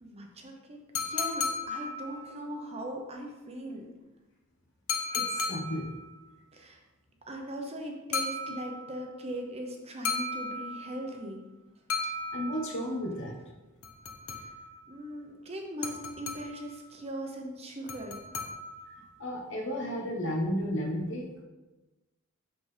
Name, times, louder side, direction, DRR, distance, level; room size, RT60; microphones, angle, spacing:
voice 1, 0.0-3.9 6.5-6.8 7.2-11.4 14.3-14.5 14.9-18.2, right 1 dB, 30° right, 2 dB, 0.9 m, -40 dB
sound 1, 1.0-2.4 4.9-6.0 8.1-9.0 10.1-11.1 11.9-12.9 13.8-14.8 15.8-16.7 17.9-19.0, left 4 dB, 80° left, 0.9 m, -35 dB
voice 2, 5.1-5.9 12.3-13.3 19.2-21.3, equal, 60° left, 0 dB, 1.3 m, -33 dB
6.3 x 5.9 x 3.4 m, 1.1 s
head